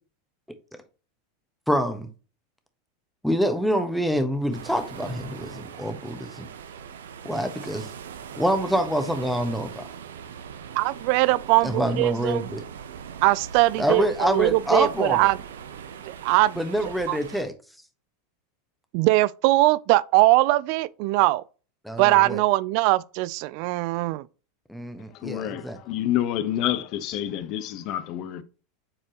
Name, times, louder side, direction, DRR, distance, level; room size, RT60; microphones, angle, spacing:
voice 1, 1.7-2.1 3.2-6.5 7.2-7.9 8.4-9.8 11.6-12.6 13.8-15.3 16.6-17.5 21.8-22.4 24.7-25.8, equal, ahead, 1.2 m, -26 dB
sound 1, 4.5-17.4, right 7 dB, 90° right, 0.8 m, -40 dB
voice 2, 10.8-12.5 13.2-15.4 16.1-16.6 17.1-17.2 18.9-21.4 22.0-24.2, right 19 dB, 60° right, 0.4 m, -21 dB
voice 3, 25.2-28.4, left 12 dB, 50° left, 0.8 m, -28 dB
7.5 x 4.4 x 2.9 m
hypercardioid pair, 105°, 0 cm